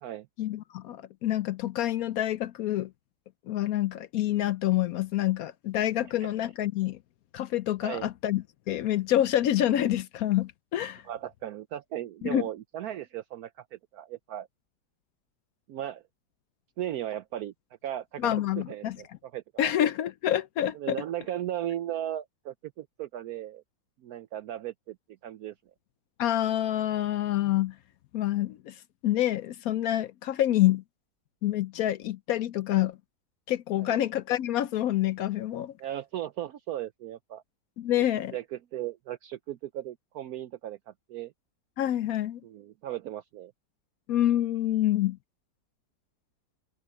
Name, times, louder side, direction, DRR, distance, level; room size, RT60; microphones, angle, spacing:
voice 1, 0.4-2.9 3.5-7.0 7.3-11.0 12.2-12.5 18.2-19.0 19.6-21.0 26.2-27.8 28.1-30.8 31.4-33.0 33.5-35.7 37.8-38.3 41.8-42.4 44.1-45.2, left 12 dB, 70° left, 0.9 m, -27 dB
voice 2, 11.0-14.5 15.7-16.0 16.8-17.5 17.8-19.7 20.7-23.6 24.0-25.0 25.2-25.5 33.8-34.0 35.8-37.4 37.9-38.0 38.3-41.3 42.4-43.5, right 12 dB, 70° right, 1.0 m, -36 dB
omnidirectional pair, 1.8 m